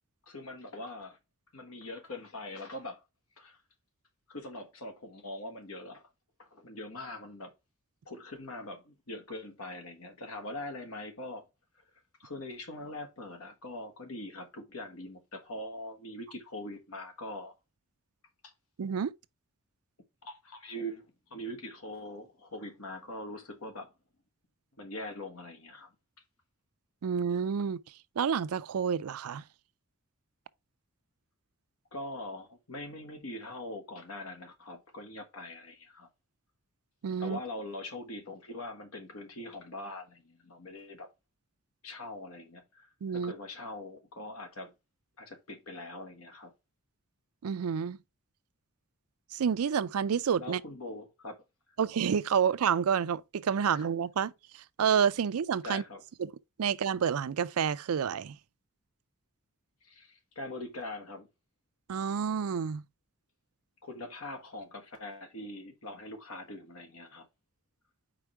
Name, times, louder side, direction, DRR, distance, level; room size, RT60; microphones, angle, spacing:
voice 1, 0.3-1.2 1.5-3.0 3.4-3.6 4.3-6.0 6.4-7.5 8.0-11.5 12.2-17.5 18.4-18.5 20.2-23.9 24.8-25.9 31.9-36.1 37.2-41.1 41.8-44.7 45.2-46.5 50.4-51.4 53.6-53.9 55.6-56.0 59.8-61.3 63.8-67.3, left 1 dB, 75° left, 1.5 m, -42 dB
voice 2, 18.8-19.1 27.0-27.8 28.2-29.4 37.0-37.4 43.0-43.3 47.4-48.0 49.3-50.6 51.8-55.8 56.2-56.3 56.6-58.4 61.9-62.8, right 7 dB, 85° right, 0.4 m, -29 dB
4.9 x 4.5 x 4.4 m
head